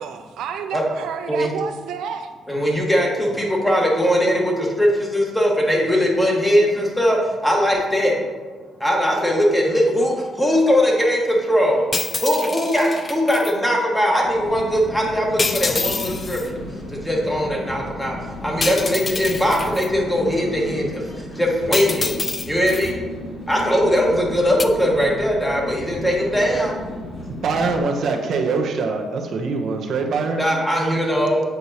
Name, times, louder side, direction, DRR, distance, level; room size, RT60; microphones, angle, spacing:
voice 1, 0.0-2.3, right 7 dB, 80° right, 7 dB, 0.3 m, -30 dB
voice 2, 2.5-8.1 8.8-11.9 12.2-16.4 17.0-18.2 18.4-21.0 21.4-22.1 22.5-23.0 23.5-26.7 30.4-31.4, equal, 10° left, -1 dB, 1.3 m, -20 dB
sound 1, 11.9-13.5 15.4-16.5 18.6-19.9 21.7-22.9 24.6-24.7, left 4 dB, 30° left, 0.4 m, -27 dB
sound 2, 14.2-27.8, left 1 dB, 70° left, 1.8 m, -34 dB
voice 3, 27.4-30.4, right 4 dB, 65° right, 3 dB, 0.7 m, -23 dB
7.9 x 4.5 x 2.8 m, 1.4 s
cardioid pair, 90°, 0 cm